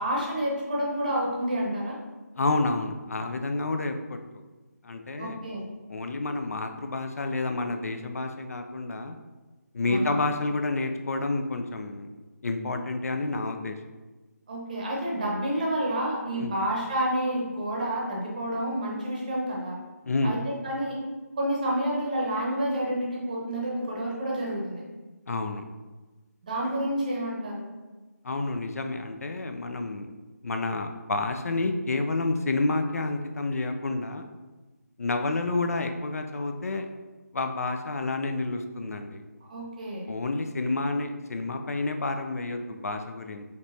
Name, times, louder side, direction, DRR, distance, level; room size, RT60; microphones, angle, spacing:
voice 1, 0.0-2.0 5.2-5.6 9.9-10.2 14.5-19.8 20.2-21.0 21.4-24.8 26.4-27.7 39.4-40.1, right 1 dB, 25° right, -2 dB, 0.8 m, -29 dB
voice 2, 2.4-4.2 4.8-5.4 5.9-9.2 9.7-13.8 16.3-16.5 20.0-20.4 25.3-25.7 28.2-30.1 30.4-34.2 35.0-36.9 37.3-39.2 40.1-43.4, left 2 dB, 55° left, 6 dB, 0.4 m, -29 dB
5.1 x 3.0 x 2.7 m, 1.2 s
figure-of-eight pair, 170°, 9 cm